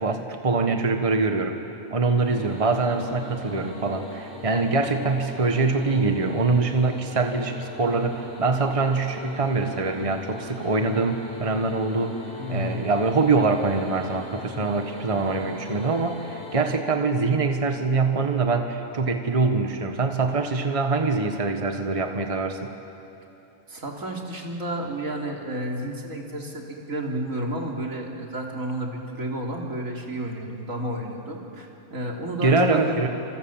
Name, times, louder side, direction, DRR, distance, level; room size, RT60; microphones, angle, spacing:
voice 1, 0.0-1.6 1.9-12.2 12.5-22.7 32.4-33.1, right 3 dB, 25° right, 5 dB, 1.4 m, -24 dB
sound 1, 2.2-16.7, left 2 dB, 20° left, 6.4 m, -41 dB
voice 2, 12.4-12.8 23.7-33.0, right 1 dB, 80° right, 0 dB, 3.6 m, -31 dB
29.0 x 27.5 x 7.3 m, 2.8 s
omnidirectional pair, 1.4 m